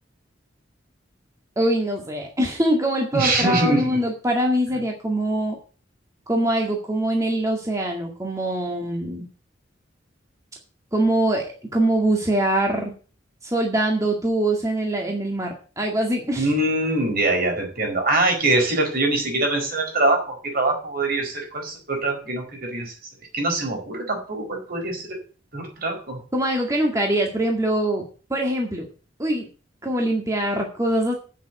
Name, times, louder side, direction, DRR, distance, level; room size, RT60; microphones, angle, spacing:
voice 1, 1.6-5.6 6.3-9.3 10.9-12.9 13.4-16.5 26.3-28.0 28.3-28.9 29.2-29.5 29.8-31.1, right 1 dB, 15° right, 0 dB, 2.0 m, -23 dB
voice 2, 3.1-3.9 16.4-22.9 23.3-25.2 25.5-26.2, right 2 dB, 55° right, 3 dB, 4.6 m, -23 dB
8.8 x 7.4 x 8.9 m, 0.38 s
head